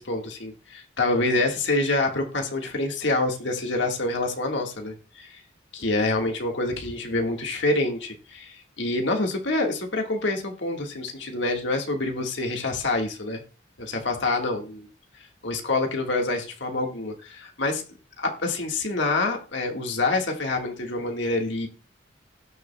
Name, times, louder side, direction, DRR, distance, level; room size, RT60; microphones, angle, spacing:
voice 1, 0.0-5.4 5.7-13.4 13.8-14.9 15.2-17.8 18.2-21.7, left 2 dB, 65° left, 2 dB, 1.6 m, -27 dB
18.5 x 7.0 x 2.2 m, 0.34 s
head